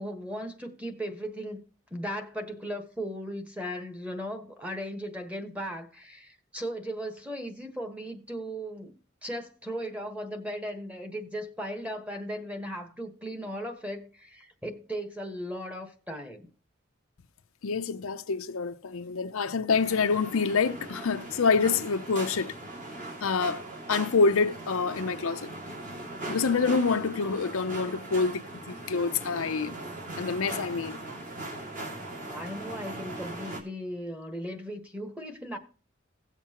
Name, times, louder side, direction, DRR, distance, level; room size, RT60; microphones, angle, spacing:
voice 1, 0.0-1.6 1.9-8.9 9.2-16.5 32.3-35.6, equal, 5° right, 1.3 m, -37 dB
voice 2, 17.6-22.5 23.2-23.6 23.9-25.5 26.3-29.8 30.2-31.0, left 4 dB, 80° left, 0.6 m, -27 dB
sound 1, 19.7-33.6, right 2 dB, 40° right, 2.3 m, -40 dB
17.0 x 7.1 x 2.9 m
head